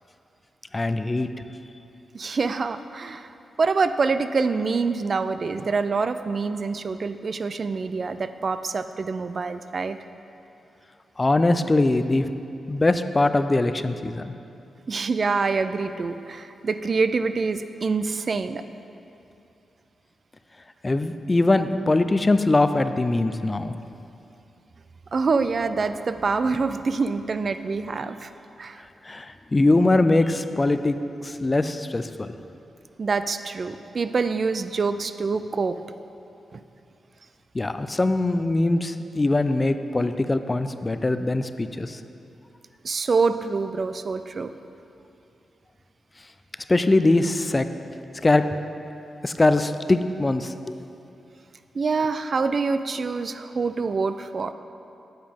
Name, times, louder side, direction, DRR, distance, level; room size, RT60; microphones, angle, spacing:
voice 1, 0.7-1.3 11.2-12.3 12.7-14.3 20.8-23.8 29.0-31.0 31.2-32.3 37.5-42.0 46.7-47.7 48.2-48.4 49.2-50.8, left 2 dB, 25° left, 10 dB, 0.4 m, -22 dB
voice 2, 2.1-3.3 3.6-10.0 14.9-18.6 25.1-28.3 28.6-28.8 33.0-35.8 36.5-36.6 42.8-44.5 51.7-54.5, right 4 dB, 50° right, 11 dB, 0.3 m, -25 dB
9.4 x 7.4 x 3.5 m, 2.7 s
cardioid pair, 80°, 0 cm